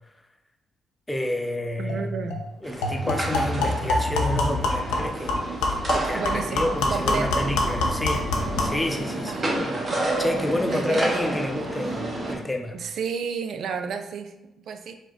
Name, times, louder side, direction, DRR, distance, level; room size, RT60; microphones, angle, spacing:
voice 1, 1.1-2.2 2.6-5.5 5.9-8.2 8.6-9.8 10.2-12.8, left 1 dB, 15° left, 4 dB, 0.7 m, -29 dB
voice 2, 1.8-2.4 6.1-7.5 7.8-8.0 9.3-9.7 10.7-11.1 12.7-14.9, right 6 dB, 65° right, 8 dB, 0.4 m, -32 dB
sound 1, 1.9-2.0 2.3-2.4 2.8-8.8, left 2 dB, 85° left, 0.6 m, -26 dB
sound 2, 2.6-12.4, right 2 dB, 50° right, 1.2 m, -30 dB
4.7 x 2.1 x 3.8 m, 0.92 s
hypercardioid pair, 50°, 0 cm